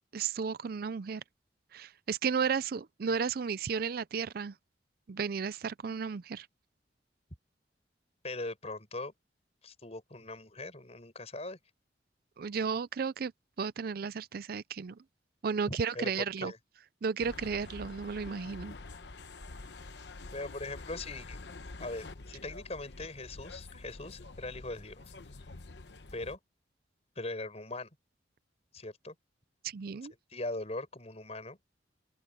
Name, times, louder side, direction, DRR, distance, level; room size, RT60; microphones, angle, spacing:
voice 1, 0.1-1.2 1.7-4.5 5.1-6.5 12.4-13.3 13.6-15.0 15.4-16.5 17.0-18.8 29.6-30.1, right 6 dB, 55° right, 0.4 m, -33 dB
voice 2, 8.2-9.1 9.6-11.6 15.7-16.0 16.4-16.6 20.3-21.4 21.8-25.1 26.1-26.4 27.2-27.9 28.7-29.1 30.3-31.6, left 2 dB, 35° left, 5.3 m, -40 dB
sound 1, 17.2-26.4, left 3 dB, 70° left, 1.0 m, -47 dB
open air
head